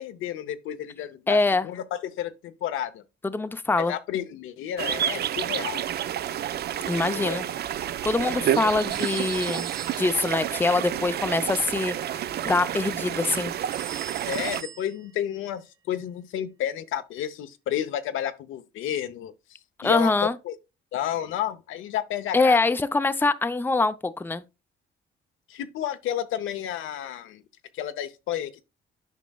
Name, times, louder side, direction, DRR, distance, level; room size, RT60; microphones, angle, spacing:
voice 1, 0.0-3.0 3.8-5.8 6.9-7.5 14.3-20.1 20.4-20.6 20.9-22.6 25.5-27.4 27.7-28.6, left 10 dB, 85° left, 0.7 m, -31 dB
voice 2, 1.3-1.7 3.2-3.9 6.9-7.5 8.0-9.7 10.0-13.5 19.8-20.3 22.3-24.4, left 3 dB, 10° left, 0.5 m, -24 dB
sound 1, 4.8-14.6, right 10 dB, 55° right, 0.4 m, -29 dB
sound 2, 8.9-10.3 13.7-15.3, right 10 dB, 75° right, 1.0 m, -41 dB
9.2 x 5.2 x 2.3 m
cardioid pair, 90°, 20 cm